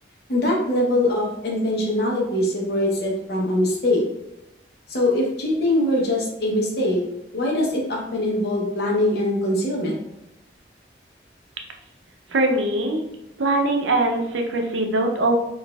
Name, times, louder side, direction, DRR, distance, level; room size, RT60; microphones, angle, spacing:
voice 1, 0.3-4.0 4.9-7.0 7.3-9.9, left 1 dB, 60° left, -2 dB, 0.8 m, -22 dB
voice 2, 12.3-13.0 13.4-15.4, right 2 dB, 85° right, 3 dB, 0.5 m, -21 dB
4.0 x 2.4 x 2.2 m, 0.87 s
head